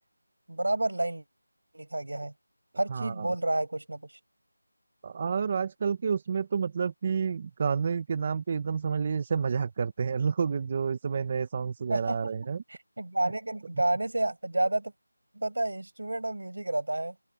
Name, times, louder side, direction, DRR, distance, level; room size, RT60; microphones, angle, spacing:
voice 1, 0.5-1.2 1.7-2.3 2.8-4.2 11.9-12.2 12.7-14.9 15.3-17.2, right 2 dB, 75° right, 7.4 m, -30 dB
voice 2, 2.9-3.3 5.0-12.6, right 6 dB, 20° right, 0.7 m, -29 dB
open air
figure-of-eight pair, 175°, 0 cm